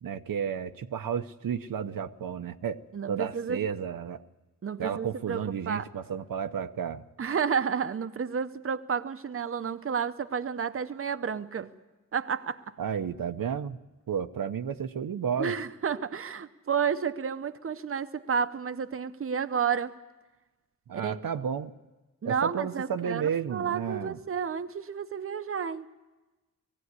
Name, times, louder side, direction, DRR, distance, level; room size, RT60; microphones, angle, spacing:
voice 1, 0.0-4.2 4.8-7.0 12.8-13.8 14.1-15.5 20.9-21.7 22.2-24.2, right 7 dB, 85° right, 8 dB, 0.8 m, -32 dB
voice 2, 2.9-3.6 4.6-5.8 7.2-11.7 12.1-12.6 15.4-19.9 20.9-21.2 22.2-25.8, right 7 dB, 40° right, 10 dB, 0.8 m, -31 dB
19.5 x 16.0 x 9.6 m, 1.1 s
wide cardioid pair, 150°, 33 cm